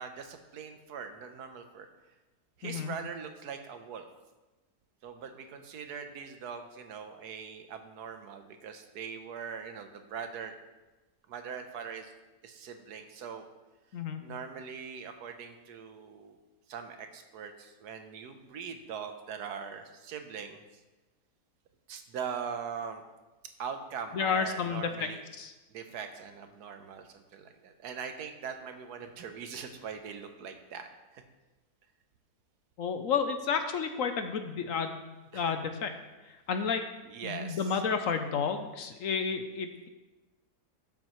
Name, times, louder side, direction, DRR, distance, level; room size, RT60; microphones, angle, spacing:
voice 1, 0.0-1.9 2.6-4.1 5.0-10.5 11.3-12.1 12.4-13.5 14.2-16.4 16.7-20.6 21.9-23.0 23.6-25.2 25.7-31.2 35.3-35.5 37.1-37.8, right 6 dB, 75° right, 7 dB, 1.4 m, -41 dB
voice 2, 2.6-3.0 13.9-14.2 24.1-25.5 32.8-35.0 35.3-35.9 36.3-36.9 37.2-39.7, left 6 dB, 65° left, 7 dB, 0.9 m, -31 dB
12.5 x 7.3 x 3.1 m, 1.1 s
omnidirectional pair, 1.7 m